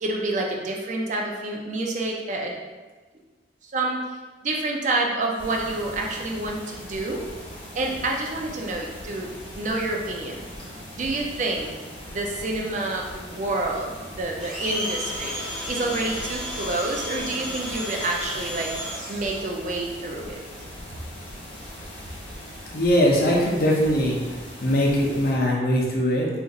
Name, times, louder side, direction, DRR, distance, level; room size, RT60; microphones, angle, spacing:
voice 1, 0.0-2.6 3.6-4.0 4.4-7.3 7.7-9.3 9.5-10.4 10.9-11.7 12.1-15.4 15.7-18.7 19.1-20.4, right 2 dB, 40° right, 0 dB, 0.4 m, -28 dB
sound 1, 5.4-25.3, equal, 25° left, 0.9 m, -40 dB
Domestic sounds home sounds, 14.4-19.5, equal, 5° left, 0.7 m, -33 dB
voice 2, 22.7-26.3, equal, 55° left, -2 dB, 0.6 m, -21 dB
2.5 x 2.4 x 3.9 m, 1.3 s
head